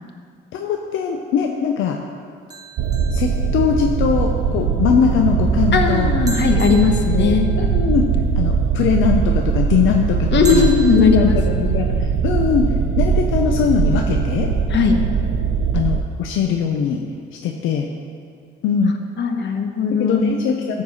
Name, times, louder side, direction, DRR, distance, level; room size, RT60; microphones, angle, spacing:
voice 1, 0.5-2.0 3.1-6.1 6.7-8.1 8.4-10.7 11.0-14.5 15.7-17.0 17.4-17.9 18.6-19.0 20.0-20.8, left 7 dB, 85° left, 3 dB, 0.7 m, -21 dB
sound 1, 2.5-4.0 6.3-7.9 10.4-11.5, right 3 dB, 20° right, 1.0 m, -36 dB
sound 2, 2.8-16.0, right 6 dB, 75° right, 0.7 m, -20 dB
voice 2, 5.7-7.5 10.3-11.8 14.7-15.0 19.2-20.4, left 5 dB, 65° left, 5 dB, 1.1 m, -18 dB
13.5 x 4.7 x 5.5 m, 2.1 s
cardioid pair, 90°, 20 cm